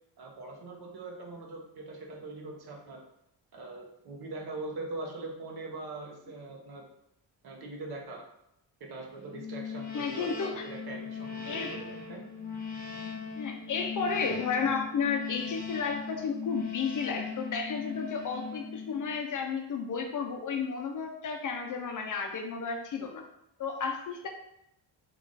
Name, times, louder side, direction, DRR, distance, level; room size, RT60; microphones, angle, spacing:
voice 1, 0.2-3.0 3.5-6.8 7.4-8.2 8.8-11.6 11.9-12.3, right 2 dB, 55° right, 1 dB, 0.8 m, -42 dB
sound 1, 9.3-19.2, left 6 dB, 20° left, 1.0 m, -39 dB
voice 2, 9.9-10.6 11.5-11.8 13.4-23.2 23.6-24.3, left 5 dB, 45° left, 3 dB, 0.4 m, -32 dB
3.3 x 2.4 x 3.8 m, 0.79 s
cardioid pair, 150°, 46 cm